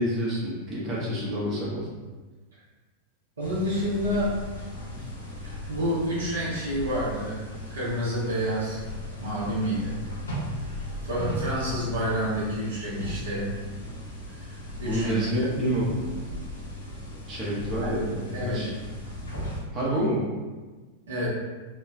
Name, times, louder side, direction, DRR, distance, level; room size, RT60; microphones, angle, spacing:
voice 1, 0.0-1.9 14.8-16.2 17.3-18.7 19.7-20.2, equal, 25° right, -7 dB, 0.8 m, -28 dB
sound 1, 3.4-19.6, equal, 70° left, 0.8 m, -37 dB
voice 2, 3.4-4.3 4.9-5.1 5.4-7.4 7.7-8.8 9.2-10.0 11.0-13.5 14.3-15.2 15.4-15.5 17.8-18.7 21.1-21.3, equal, 70° right, -8 dB, 0.9 m, -29 dB
2.8 x 2.2 x 2.4 m, 1.3 s
figure-of-eight pair, 90°, 0 cm